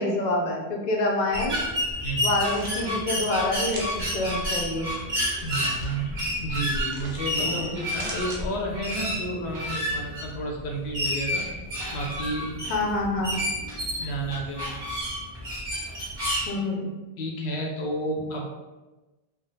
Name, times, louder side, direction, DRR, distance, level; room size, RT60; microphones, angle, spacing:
voice 1, 0.0-1.6 2.2-4.9 7.4-7.8 12.7-13.4 16.5-16.9, left 2 dB, 55° left, 0 dB, 0.5 m, -27 dB
sound 1, 1.3-16.5, equal, 50° right, 1.2 m, -30 dB
voice 2, 2.0-2.4 5.4-11.5 11.9-12.6 14.0-14.8 17.2-18.5, right 1 dB, 85° left, 0 dB, 0.9 m, -31 dB
sound 2, 2.2-2.8 3.7-4.1 5.3-5.9 6.9-7.4 7.8-8.4, right 2 dB, 85° right, 0.9 m, -41 dB
3.0 x 2.1 x 2.7 m, 1.2 s
omnidirectional pair, 1.1 m